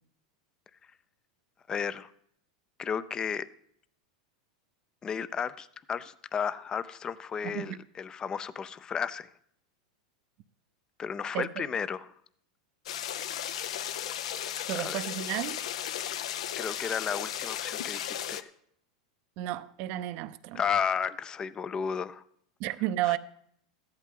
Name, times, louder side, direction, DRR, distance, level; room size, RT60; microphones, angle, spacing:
voice 1, 1.7-2.1 2.8-3.5 5.0-9.3 11.0-12.1 14.8-15.0 16.6-18.5 20.5-22.2 23.0-23.2, left 7 dB, 20° left, 0.5 m, -33 dB
sound 1, 12.9-18.4, left 10 dB, 75° left, 0.7 m, -35 dB
voice 2, 14.7-15.6 19.4-20.6 22.6-23.2, right 14 dB, 50° right, 0.6 m, -32 dB
13.5 x 11.0 x 3.7 m
hypercardioid pair, 120°, 3 cm